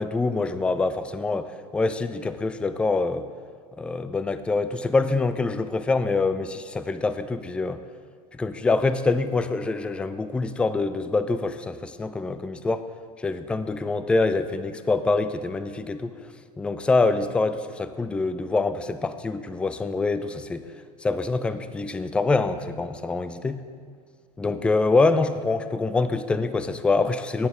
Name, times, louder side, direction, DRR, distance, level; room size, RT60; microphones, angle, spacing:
voice 1, 0.0-1.5 1.7-3.2 3.8-7.8 8.3-12.8 13.2-16.1 16.6-20.6 21.0-23.6 24.4-27.5, left 3 dB, 5° left, 12 dB, 0.4 m, -25 dB
12.0 x 9.6 x 3.8 m, 2.1 s
figure-of-eight pair, 80°, 21 cm